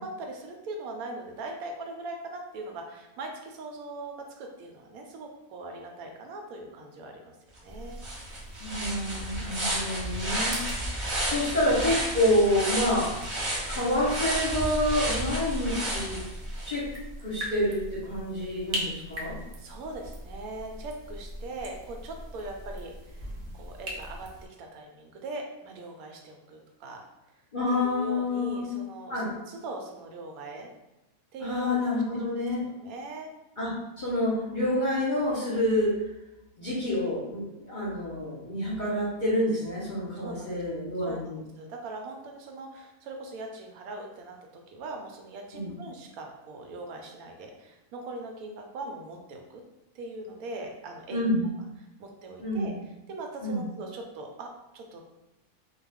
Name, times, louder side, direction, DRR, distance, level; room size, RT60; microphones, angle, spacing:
voice 1, 0.0-8.0 9.3-9.7 19.6-27.0 27.7-30.7 31.3-33.3 40.2-40.6 41.0-49.6 49.9-51.2 52.0-52.7 53.1-55.0, right 2 dB, 80° right, 2 dB, 1.0 m, -41 dB
sound 1, 7.6-7.7 8.0-16.7, right 1 dB, 40° right, 0.9 m, -32 dB
sound 2, 7.7-24.5, equal, 55° right, 0.7 m, -40 dB
voice 2, 8.6-10.6 11.2-13.1 13.7-16.2 16.6-16.8 17.2-19.3 27.5-28.7 29.1-29.3 31.4-32.6 33.6-33.7 34.0-35.9 36.6-41.4 45.5-45.8 51.1-51.5 52.4-52.7 53.4-53.6, left 1 dB, 45° left, -8 dB, 0.8 m, -28 dB
2.3 x 2.3 x 3.4 m, 0.93 s
omnidirectional pair, 1.5 m